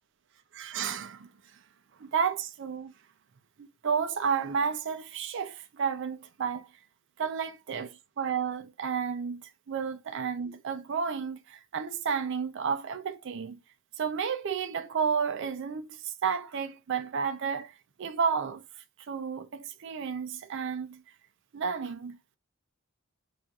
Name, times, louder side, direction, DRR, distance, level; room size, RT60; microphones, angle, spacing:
voice 1, 0.5-1.3 2.0-2.9 3.6-6.7 7.2-13.6 14.0-18.6 19.1-21.0 21.5-22.2, right 6 dB, 55° right, 0.4 m, -32 dB
4.2 x 2.4 x 2.2 m
head